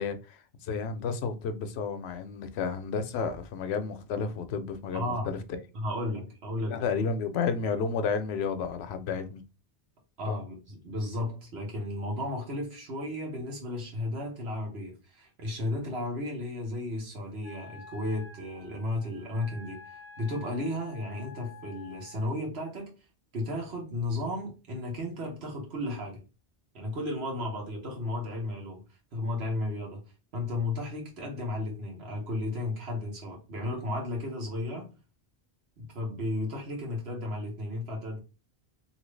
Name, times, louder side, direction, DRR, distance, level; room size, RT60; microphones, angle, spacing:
voice 1, 0.0-5.6 6.5-9.4 10.3-10.4, left 5 dB, 90° left, 0.8 m, -32 dB
voice 2, 4.9-5.4 5.7-6.8 10.2-19.8 20.2-22.9 23.3-26.2 26.7-28.8 29.1-30.0 30.3-34.9 35.8-38.2, left 1 dB, 80° right, 1.4 m, -34 dB
Wind instrument woodwind instrument, 17.4-22.3, left 4 dB, 55° left, 0.7 m, -49 dB
2.8 x 2.7 x 3.1 m
omnidirectional pair, 1.1 m